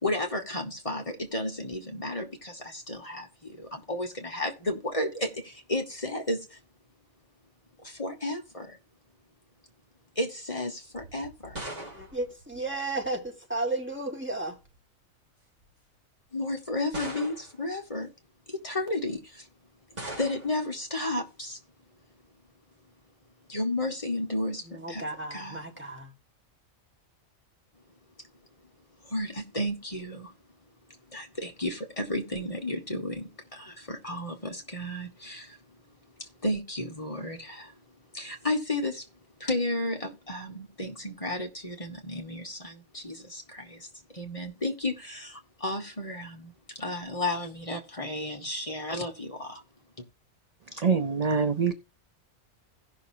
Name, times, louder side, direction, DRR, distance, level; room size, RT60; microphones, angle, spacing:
voice 1, 0.0-6.6 7.8-8.8 10.1-11.6 16.3-18.1 18.5-19.5 20.2-21.6 23.5-25.0 25.3-25.7 29.0-30.3 31.1-35.6 36.2-37.8 38.1-39.1 39.4-49.6 50.0-50.1, left 1 dB, 25° left, 1.4 m, -33 dB
sound 1, 10.9-13.3 14.3-14.8 15.6-15.7 16.9-17.7 20.0-20.7, right 1 dB, 30° right, 2.7 m, -41 dB
voice 2, 11.7-14.6 24.7-26.1, right 2 dB, 10° right, 1.6 m, -34 dB
voice 3, 50.8-51.7, right 5 dB, 45° right, 0.5 m, -24 dB
17.0 x 6.1 x 2.8 m
omnidirectional pair, 1.4 m